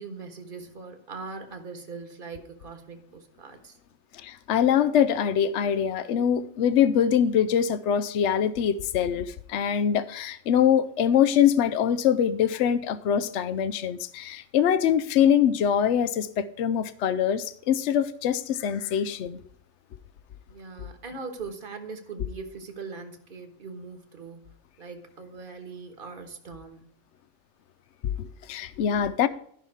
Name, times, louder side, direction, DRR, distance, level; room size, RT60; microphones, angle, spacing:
voice 1, 0.0-3.8 20.5-26.9, right 4 dB, 45° right, 1.5 m, -41 dB
voice 2, 4.2-19.4 28.2-29.3, left 9 dB, 75° left, 0.9 m, -23 dB
13.5 x 5.7 x 4.7 m
omnidirectional pair, 1.2 m